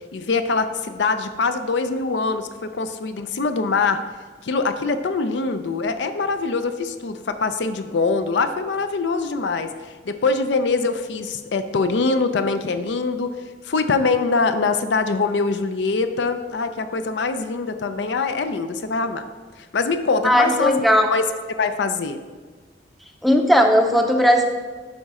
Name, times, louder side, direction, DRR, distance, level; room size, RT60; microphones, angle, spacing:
voice 1, 0.1-2.5 2.7-4.0 4.4-9.7 10.1-13.3 13.7-19.3 19.7-20.8 21.1-21.2 21.6-22.2, left 4 dB, 75° left, 9 dB, 0.5 m, -23 dB
voice 2, 20.2-21.1 23.2-24.4, equal, ahead, 3 dB, 0.5 m, -17 dB
12.0 x 4.1 x 3.6 m, 1.5 s
head